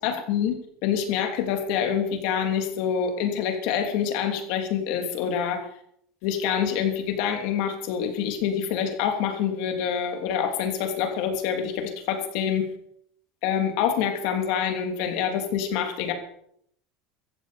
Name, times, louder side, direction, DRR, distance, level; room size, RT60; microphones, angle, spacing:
voice 1, 0.0-0.5 0.8-5.6 6.2-12.6 13.4-16.1, left 8 dB, 50° left, 5 dB, 3.1 m, -26 dB
16.5 x 14.5 x 5.2 m, 0.69 s
cardioid pair, 180°, 0 cm